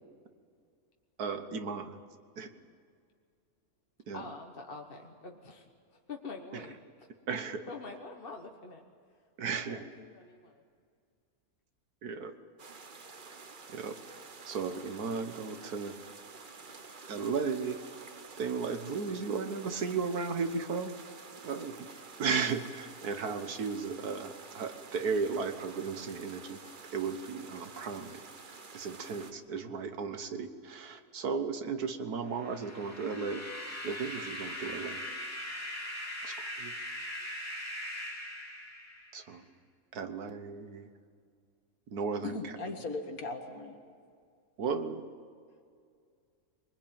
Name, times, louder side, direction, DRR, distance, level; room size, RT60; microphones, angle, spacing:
voice 1, 1.2-2.0 2.4-2.5 4.1-4.3 6.5-6.7 7.3-7.6 9.4-9.8 12.0-12.3 13.7-14.0 14.5-16.0 17.1-17.8 18.4-20.9 21.4-21.9 22.2-26.6 26.9-28.2 28.7-33.4 33.8-35.0 36.2-36.7 39.1-39.4 39.9-40.9 41.9-42.7 44.6-45.0, right 5 dB, 85° right, 8 dB, 1.8 m, -35 dB
voice 2, 4.1-5.6 5.9-7.1 7.7-8.8 9.5-10.6, left 3 dB, 40° left, 2 dB, 1.4 m, -46 dB
sound 1, 12.6-29.3, right 4 dB, 35° right, 1.1 m, -50 dB
sound 2, 32.3-39.3, left 1 dB, 10° left, 2.9 m, -40 dB
voice 3, 42.2-43.8, left 3 dB, 70° left, 4 dB, 2.3 m, -38 dB
23.5 x 20.5 x 8.9 m, 2.2 s
omnidirectional pair, 1.6 m